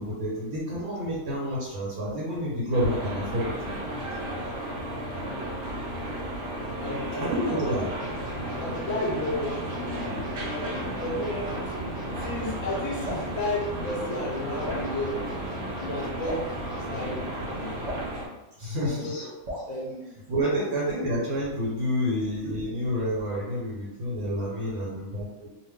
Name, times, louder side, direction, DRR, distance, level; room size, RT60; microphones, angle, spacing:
voice 1, 0.0-3.5 7.2-7.9 18.6-19.0 20.3-25.5, equal, 90° right, -6 dB, 1.3 m, -29 dB
sound 1, 2.7-18.3, right 1 dB, 60° right, 1.0 m, -34 dB
voice 2, 6.8-7.7 8.6-10.7 11.0-11.5 12.2-15.2 15.8-17.7 18.8-19.3 19.7-20.6, left 1 dB, 80° left, -3 dB, 1.1 m, -33 dB
sound 2, 8.0-17.4, left 1 dB, 50° left, 1.0 m, -42 dB
Drip, 13.0-13.3 14.6-14.9 16.2-16.5 17.8-18.1 19.5-19.7, equal, 45° right, 0.7 m, -34 dB
2.6 x 2.6 x 3.4 m, 1.0 s
omnidirectional pair, 1.5 m